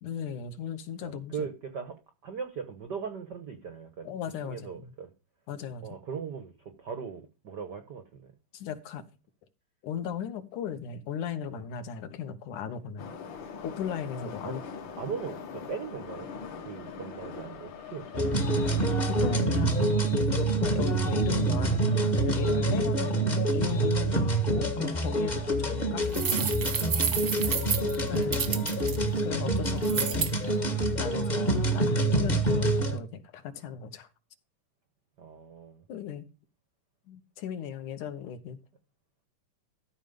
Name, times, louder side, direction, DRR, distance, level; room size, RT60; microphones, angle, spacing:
voice 1, 0.0-1.5 4.0-4.9 5.5-6.0 8.5-9.1 9.8-13.1 13.6-14.6 19.1-19.9 20.3-26.5 28.1-28.5 29.2-30.3 31.0-34.1 35.9-36.3 37.1-38.6, left 8 dB, 70° left, 2.6 m, -36 dB
voice 2, 1.0-4.1 4.4-5.1 5.8-6.5 6.8-8.3 14.4-14.6 15.0-16.3 16.6-18.5 25.6-25.7 27.4-28.2 35.2-35.8, right 6 dB, 75° right, 0.9 m, -39 dB
Subway metro underground, 13.0-19.4, left 5 dB, 55° left, 1.5 m, -42 dB
sound 1, 18.1-33.0, right 2 dB, 25° left, 0.9 m, -26 dB
sound 2, 26.1-29.0 29.8-30.3, right 6 dB, 55° right, 1.0 m, -30 dB
13.5 x 5.3 x 5.2 m
omnidirectional pair, 3.8 m